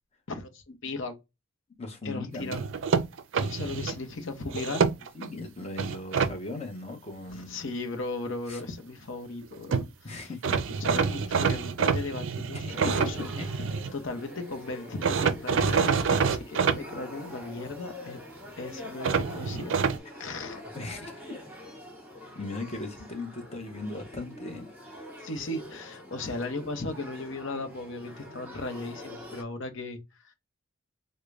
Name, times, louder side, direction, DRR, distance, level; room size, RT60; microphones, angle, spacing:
voice 1, 0.3-1.2 2.0-2.6 3.3-4.9 7.3-10.3 10.8-13.3 13.9-18.2 18.6-19.8 20.1-20.6 25.2-30.3, left 2 dB, 60° left, 0.8 m, -36 dB
voice 2, 1.8-2.6 5.1-7.6 8.5-8.6 10.0-10.4 12.6-13.4 20.7-21.4 22.3-24.7, left 2 dB, 30° left, 0.8 m, -38 dB
sound 1, 2.5-4.0 4.5-5.3 5.8-6.3 9.4-9.5 9.7-9.9 10.4-13.9 15.0-16.8 19.0-20.0, right 5 dB, 65° right, 0.4 m, -26 dB
Male speech man speaking / Child speech kid speaking / Conversation, 12.7-29.4, left 1 dB, 10° right, 1.3 m, -45 dB
3.7 x 2.1 x 3.2 m
head